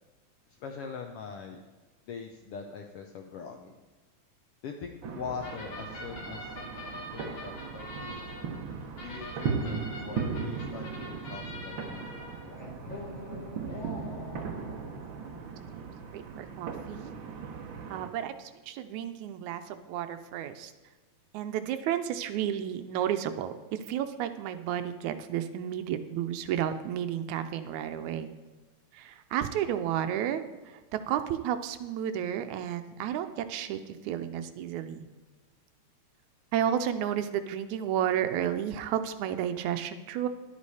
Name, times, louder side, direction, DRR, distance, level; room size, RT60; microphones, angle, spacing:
voice 1, 0.6-1.6 2.1-3.8 4.6-6.5 7.1-8.4 9.0-12.1 12.4-12.7, left 6 dB, 75° left, 4 dB, 1.3 m, -42 dB
sound 1, 5.0-18.1, right 5 dB, 60° right, 1.3 m, -38 dB
sound 2, 5.4-15.8, left 1 dB, 50° left, 3.4 m, -44 dB
voice 2, 16.1-17.1 17.9-20.7 21.3-28.3 28.9-30.8 31.1-35.1 36.5-40.3, right 10 dB, 85° right, 9 dB, 2.0 m, -32 dB
11.0 x 8.4 x 4.8 m, 1.3 s
omnidirectional pair, 3.4 m